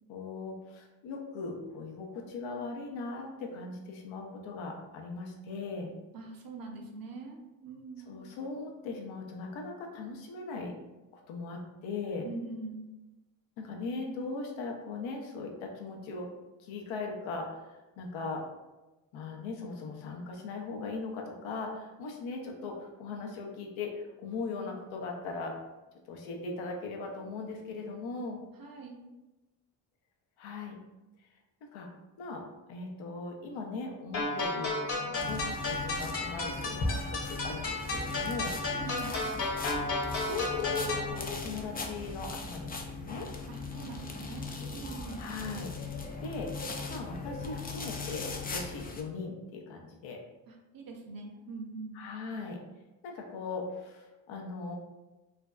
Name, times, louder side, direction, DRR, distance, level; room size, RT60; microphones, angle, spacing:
voice 1, 0.1-5.9 8.1-10.8 11.1-12.3 13.6-16.3 16.6-18.4 19.1-25.6 26.1-28.4 30.4-30.8 31.6-31.9 32.2-32.4 32.7-38.6 40.2-43.3 45.2-45.7 46.2-46.5 46.9-50.2 51.9-52.6 53.0-54.8, left 3 dB, 75° left, 1 dB, 0.6 m, -39 dB
voice 2, 6.1-8.1 12.2-12.9 28.6-29.0 38.7-39.2 43.5-45.4 50.5-52.0, right 3 dB, 45° right, 2 dB, 0.7 m, -43 dB
sound 1, 34.1-41.1, left 2 dB, 50° left, 1.2 m, -33 dB
sound 2, 35.2-49.0, left 3 dB, 20° left, 0.4 m, -38 dB
2.5 x 2.1 x 2.3 m, 1.1 s
hypercardioid pair, 45°, 48 cm